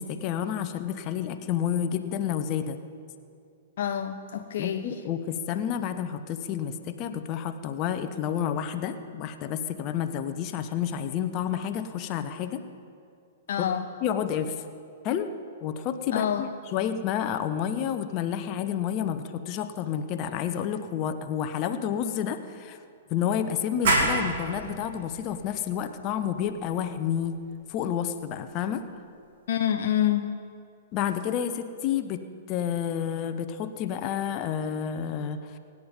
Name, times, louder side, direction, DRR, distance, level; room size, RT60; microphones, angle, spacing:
voice 1, 0.0-2.8 4.6-12.6 14.0-14.6 15.0-15.3 15.6-22.8 23.1-27.4 27.7-28.8 30.9-32.2 32.5-35.6, left 9 dB, 30° left, 9 dB, 1.0 m, -30 dB
voice 2, 3.8-5.0 13.5-13.9 16.1-16.5 29.5-30.3, left 10 dB, 50° left, 7 dB, 0.6 m, -27 dB
sound 1, 23.8-29.2, right 2 dB, 55° right, 3.0 m, -31 dB
24.0 x 9.6 x 5.3 m, 2.4 s
figure-of-eight pair, 110°, 0 cm